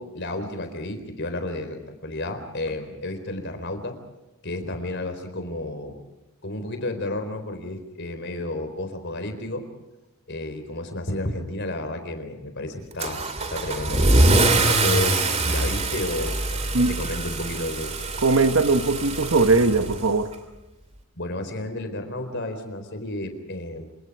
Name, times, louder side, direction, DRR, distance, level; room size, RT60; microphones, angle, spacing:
voice 1, 0.0-4.0 4.4-6.0 6.4-9.6 10.3-14.2 14.6-18.0 21.2-23.9, left 2 dB, 55° left, 8 dB, 4.1 m, -32 dB
Car / Engine starting / Accelerating revving vroom, 13.0-20.3, right 2 dB, 30° right, 2.8 m, -23 dB
voice 2, 18.2-20.3, right 3 dB, 65° right, 8 dB, 1.5 m, -20 dB
27.5 x 27.0 x 4.9 m, 0.99 s
head